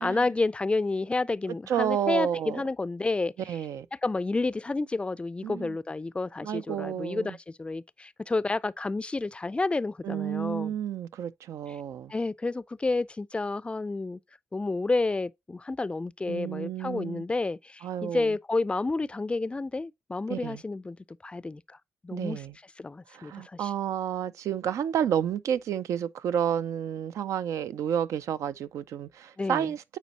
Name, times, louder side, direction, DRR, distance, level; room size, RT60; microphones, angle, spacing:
voice 1, 0.0-3.3 4.0-10.7 12.1-14.2 14.5-21.0 21.2-21.8 22.0-22.4 22.8-23.7 29.4-29.7, left 3 dB, 20° left, 0.3 m, -30 dB
voice 2, 1.7-2.6 3.5-3.9 5.4-5.8 6.4-7.4 10.0-12.1 16.3-17.3 17.8-18.3 20.3-20.6 22.1-22.6 23.1-30.0, right 9 dB, 90° right, 0.4 m, -30 dB
8.2 x 4.2 x 2.8 m
cardioid pair, 75°, 5 cm